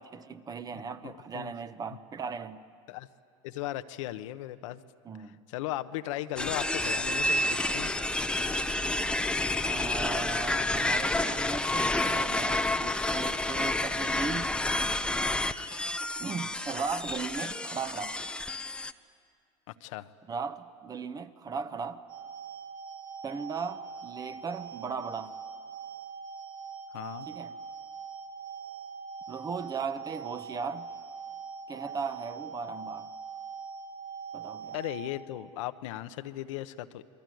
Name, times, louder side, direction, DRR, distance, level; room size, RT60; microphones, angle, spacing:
voice 1, 0.0-2.6 5.0-5.4 9.6-14.6 16.2-18.2 20.3-22.0 23.2-25.3 27.3-27.5 29.3-30.9 31.7-33.1 34.3-34.8, right 5 dB, 25° right, 1.0 m, -37 dB
voice 2, 1.0-1.5 2.9-3.1 3.4-4.8 5.5-7.9 19.8-20.1 26.9-27.3 34.7-37.0, left 14 dB, 75° left, 1.0 m, -37 dB
sound 1, 6.4-18.9, left 2 dB, 5° left, 0.7 m, -29 dB
sound 2, 22.1-35.1, right 6 dB, 55° right, 7.0 m, -42 dB
28.5 x 21.5 x 9.3 m
supercardioid pair, 120°, 16 cm